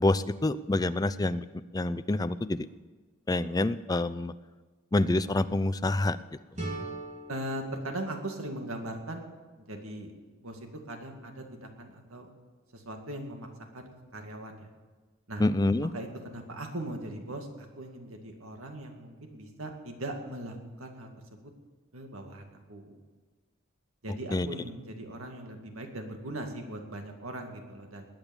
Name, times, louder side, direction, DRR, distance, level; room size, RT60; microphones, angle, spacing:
voice 1, 0.0-1.4 1.7-2.6 3.3-4.3 4.9-6.2 15.4-15.9 24.3-24.5, left 2 dB, 15° left, 13 dB, 0.4 m, -27 dB
sound 1, 6.5-9.4, right 2 dB, 35° right, 3.3 m, -41 dB
voice 2, 7.3-9.3 9.6-10.1 10.4-12.3 12.7-14.7 15.3-15.4 15.8-21.4 21.9-23.0 24.0-28.0, right 1 dB, 80° right, 3 dB, 2.2 m, -40 dB
20.0 x 9.0 x 7.1 m, 1.3 s
head